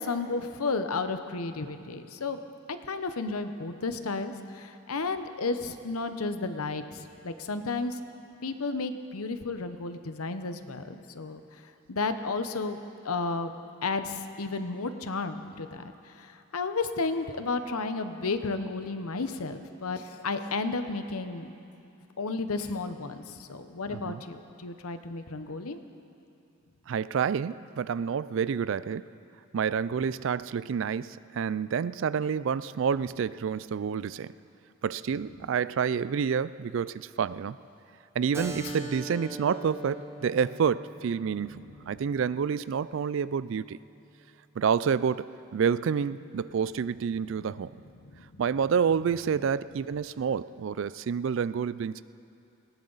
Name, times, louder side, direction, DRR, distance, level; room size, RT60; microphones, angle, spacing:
voice 1, 0.0-2.4 2.7-8.0 8.4-11.4 11.9-12.8 13.0-13.5 13.8-21.5 22.2-25.8 38.6-38.7 48.2-48.3, left 3 dB, 90° left, 9 dB, 0.9 m, -32 dB
voice 2, 23.9-24.2 26.9-29.1 29.5-34.4 34.8-37.6 38.2-43.8 44.6-47.7 48.4-52.0, right 7 dB, 60° right, 17 dB, 0.3 m, -28 dB
Keyboard (musical), 38.3-43.5, right 1 dB, 10° right, 0.9 m, -42 dB
19.5 x 17.5 x 4.0 m, 2.6 s
head